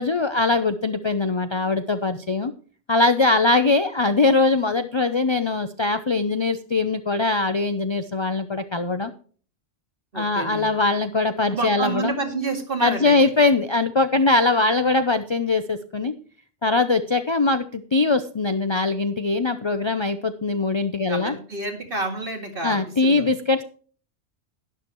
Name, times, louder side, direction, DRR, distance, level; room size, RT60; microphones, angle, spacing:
voice 1, 0.0-2.5 2.9-9.1 10.1-12.1 12.8-16.1 16.6-21.3 22.6-23.6, left 3 dB, 35° left, 10 dB, 0.5 m, -21 dB
voice 2, 10.1-10.7 11.5-13.2 21.1-23.3, right 3 dB, 45° right, 3 dB, 2.4 m, -29 dB
12.0 x 10.5 x 3.0 m, 0.43 s
omnidirectional pair, 1.2 m